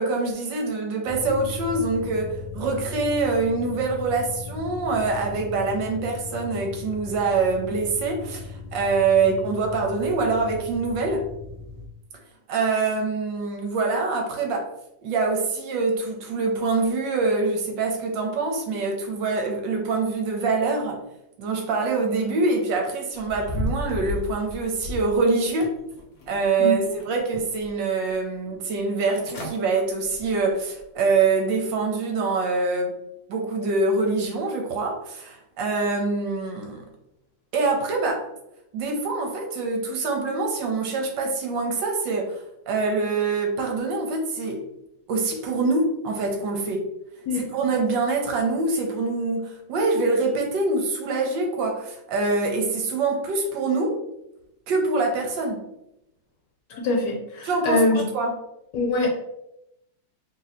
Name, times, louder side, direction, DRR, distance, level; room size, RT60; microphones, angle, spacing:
voice 1, 0.0-11.3 12.5-14.7 15.0-21.0 21.4-25.7 26.3-32.9 33.3-36.8 37.5-38.3 38.7-44.7 45.1-46.9 47.3-54.0 54.7-55.7 57.4-58.4, right 3 dB, 70° right, 2 dB, 1.3 m, -25 dB
sound 1, 1.0-11.9, left 4 dB, 50° right, 0.3 m, -37 dB
sound 2, 23.1-25.2 25.6-26.4 26.8-27.7 28.1-28.2 28.9-29.0 29.2-29.6 30.0-30.3 30.8-30.9, left 1 dB, 90° left, 0.5 m, -33 dB
voice 2, 56.7-58.0 58.7-59.1, left 2 dB, 70° left, 0 dB, 1.2 m, -23 dB
3.2 x 2.8 x 4.0 m, 0.85 s
omnidirectional pair, 2.1 m